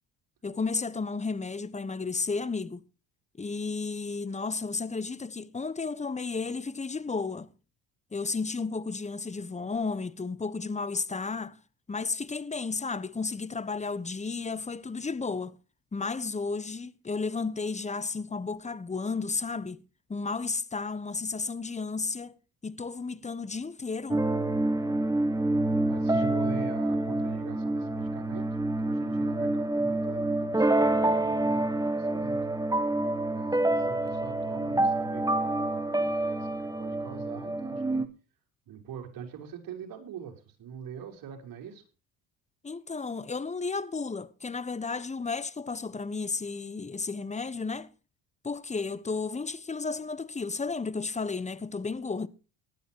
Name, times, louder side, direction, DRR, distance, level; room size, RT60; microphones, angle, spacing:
voice 1, 0.4-2.8 3.4-7.5 8.1-11.6 11.9-15.6 15.9-19.8 20.1-22.4 22.6-24.3 42.6-47.9 48.4-52.3, left 4 dB, 20° left, 1.2 m, -33 dB
sound 1, 24.1-38.1, right 2 dB, 10° right, 1.7 m, -27 dB
voice 2, 25.8-28.5 28.8-32.4 33.3-38.0 38.7-41.8, right 8 dB, 65° right, 5.2 m, -44 dB
19.0 x 12.0 x 3.0 m
supercardioid pair, 80°, 38 cm